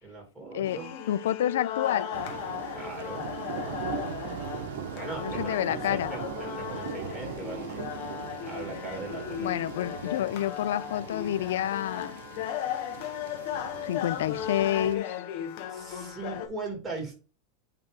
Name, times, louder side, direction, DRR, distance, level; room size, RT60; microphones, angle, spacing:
voice 1, 0.0-0.9 2.7-3.3 4.9-7.8 8.4-9.6 15.7-17.1, right 3 dB, 15° right, 2.8 m, -39 dB
sound 1, 0.6-16.5, left 10 dB, 60° left, 1.0 m, -36 dB
voice 2, 1.1-2.1 5.2-6.1 9.4-12.2 13.8-15.2, left 11 dB, 85° left, 0.4 m, -29 dB
sound 2, 2.1-14.9, right 7 dB, 80° right, 1.0 m, -40 dB
8.7 x 3.1 x 3.6 m
supercardioid pair, 140°, 0 cm